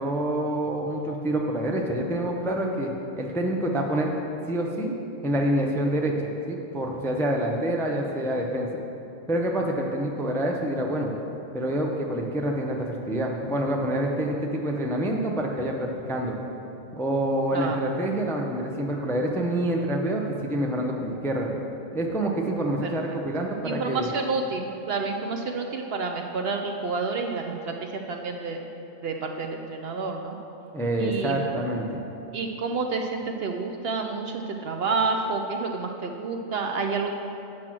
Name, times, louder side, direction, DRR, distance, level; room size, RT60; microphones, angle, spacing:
voice 1, 0.0-4.1 4.5-4.9 5.2-6.2 6.5-8.7 9.3-11.1 11.5-16.4 17.0-21.5 21.9-24.1 30.7-32.0, right 1 dB, 5° left, 0 dB, 0.4 m, -27 dB
voice 2, 22.8-23.2 23.6-28.7 29.0-30.4 31.0-31.5 32.3-37.2, right 4 dB, 60° right, 3 dB, 0.7 m, -29 dB
8.6 x 6.2 x 6.0 m, 2.9 s
omnidirectional pair, 1.3 m